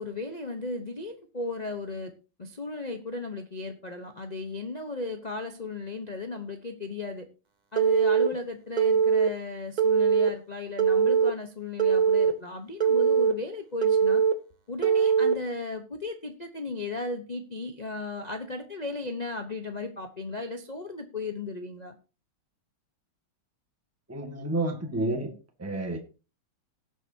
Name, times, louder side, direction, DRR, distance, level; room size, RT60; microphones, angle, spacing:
voice 1, 0.0-2.1 2.4-7.3 7.7-14.2 14.7-22.0, left 3 dB, 55° left, 5 dB, 0.4 m, -35 dB
Telephone, 7.7-8.3 8.8-9.3 9.8-10.3 10.8-11.3 11.8-12.3 12.8-13.3 13.8-14.3 14.8-15.3, right 7 dB, 45° right, 0.5 m, -21 dB
voice 2, 24.1-25.3 25.6-26.0, right 2 dB, 5° right, 3 dB, 1.6 m, -30 dB
18.5 x 7.4 x 2.8 m, 0.33 s
omnidirectional pair, 2.4 m